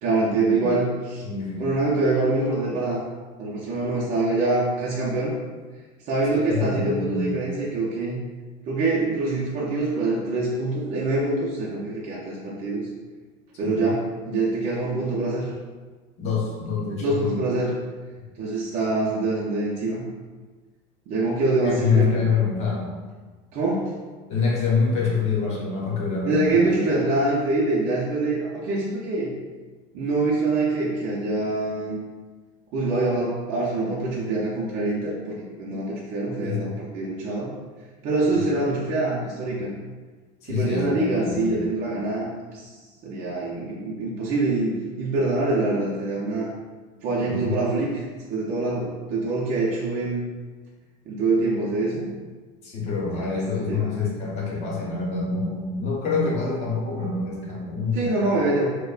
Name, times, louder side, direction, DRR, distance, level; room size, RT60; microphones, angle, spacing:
voice 1, 0.0-1.2 1.6-3.0 3.4-5.3 6.1-8.2 8.7-12.9 13.6-15.5 17.0-17.8 18.4-20.0 21.1-22.1 23.5-24.0 26.3-29.3 29.9-32.0 32.7-37.5 38.0-39.7 40.4-42.7 43.0-46.5 47.0-50.3 51.1-52.1 53.1-54.0 57.9-58.7, right 2 dB, 45° right, -6 dB, 0.6 m, -25 dB
voice 2, 1.2-1.7 6.3-7.4 13.6-13.8 16.2-17.4 21.6-22.9 24.3-26.7 36.4-36.8 38.3-38.4 40.4-41.6 47.3-47.6 52.6-58.1, left 4 dB, 40° left, -3 dB, 0.9 m, -26 dB
5.0 x 2.1 x 2.4 m, 1.4 s
cardioid pair, 160°, 17 cm